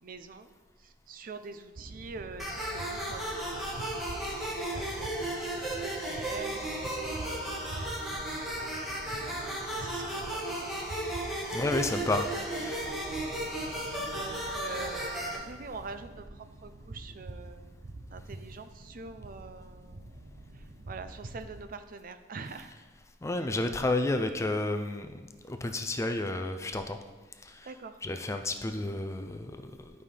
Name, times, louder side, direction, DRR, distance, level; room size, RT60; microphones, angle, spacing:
voice 1, 0.0-0.5 0.8-3.9 4.7-7.5 8.7-9.3 9.8-10.7 11.2-11.4 14.1-17.7 18.1-20.0 20.5-22.7 27.7-28.0, right 4 dB, 50° right, 10 dB, 0.5 m, -45 dB
sound 1, 1.8-21.7, right 2 dB, 75° right, 0.8 m, -45 dB
sound 2, 2.4-15.4, right 1 dB, ahead, 1.4 m, -35 dB
voice 2, 11.5-12.9 14.0-14.1 22.5-22.6 23.2-27.0 27.4-29.9, left 2 dB, 15° left, 7 dB, 0.4 m, -32 dB
11.5 x 5.5 x 3.4 m, 1.3 s
head